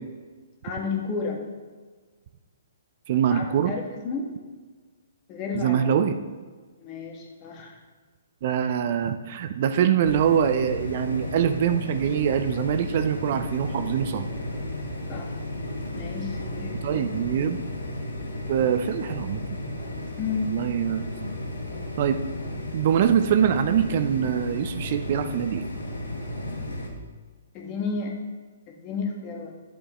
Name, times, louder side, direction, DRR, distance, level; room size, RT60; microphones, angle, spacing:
voice 1, 0.6-1.4 3.3-4.3 5.3-5.9 6.8-7.8 15.1-15.3 15.9-17.1 20.2-20.6 27.5-28.1 28.7-29.5, left 4 dB, 30° left, 0 dB, 1.5 m, -32 dB
voice 2, 3.1-3.7 5.5-6.1 8.4-14.2 16.8-17.7 18.5-19.4 20.5-21.1 22.0-22.2 22.7-25.7, right 8 dB, 50° right, 9 dB, 0.5 m, -24 dB
sound 1, 10.0-26.9, left 1 dB, 90° left, 1.4 m, -34 dB
11.0 x 6.9 x 3.1 m, 1.4 s
figure-of-eight pair, 130°, 0 cm